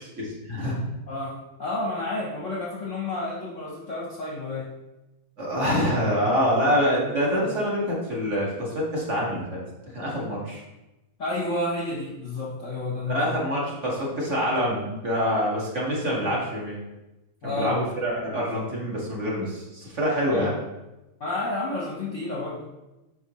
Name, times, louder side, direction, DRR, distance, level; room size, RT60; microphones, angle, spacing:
voice 1, 0.2-0.8 5.4-9.6 9.9-10.6 13.1-16.8 17.4-20.5, equal, 35° right, -5 dB, 1.9 m, -26 dB
voice 2, 1.1-4.7 11.2-13.4 17.4-17.8 20.3-20.6 21.2-22.6, left 2 dB, 50° left, -3 dB, 1.0 m, -30 dB
8.8 x 5.9 x 3.0 m, 0.98 s
omnidirectional pair, 2.2 m